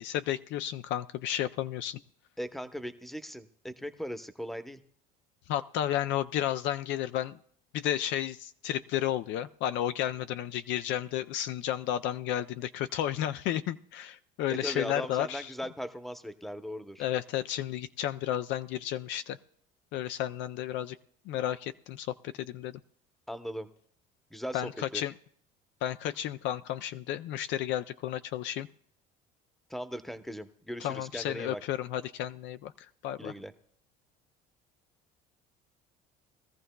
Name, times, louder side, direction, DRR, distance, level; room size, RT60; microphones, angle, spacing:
voice 1, 0.0-2.0 5.5-7.4 7.7-15.5 17.0-19.4 19.9-21.0 21.3-22.8 24.5-25.1 25.8-28.7 30.8-32.7 33.0-33.3, left 11 dB, 65° left, 11 dB, 0.4 m, -32 dB
voice 2, 2.4-4.8 14.5-17.0 23.3-23.7 24.3-25.0 29.7-31.6 33.2-33.5, equal, ahead, 10 dB, 0.8 m, -38 dB
20.5 x 14.0 x 2.3 m, 0.62 s
supercardioid pair, 80°, 20 cm